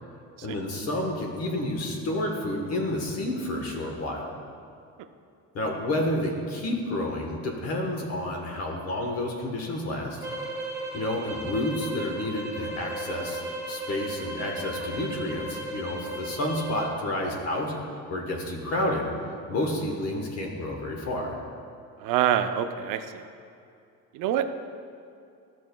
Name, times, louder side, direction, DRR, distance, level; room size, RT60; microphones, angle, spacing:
voice 1, 0.4-4.3 5.5-10.2 10.9-13.4 13.7-19.1 19.5-21.4, left 1 dB, 50° left, 1 dB, 1.2 m, -30 dB
sound 1, 10.2-17.0, right 1 dB, 10° right, 1.0 m, -35 dB
voice 2, 22.0-23.3 24.1-24.4, right 10 dB, 80° right, 8 dB, 0.6 m, -26 dB
14.5 x 6.2 x 2.3 m, 2.5 s
cardioid pair, 165°, 31 cm